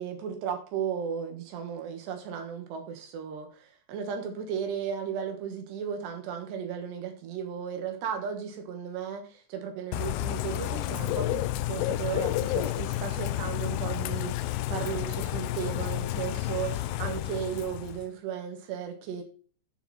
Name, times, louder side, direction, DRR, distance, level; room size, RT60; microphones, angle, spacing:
voice 1, 0.0-19.2, right 8 dB, 65° right, 3.9 m, -35 dB
Bird / Rain, 9.9-18.1, left 15 dB, 85° left, 3.0 m, -31 dB
15.0 x 5.7 x 4.5 m
omnidirectional pair, 5.4 m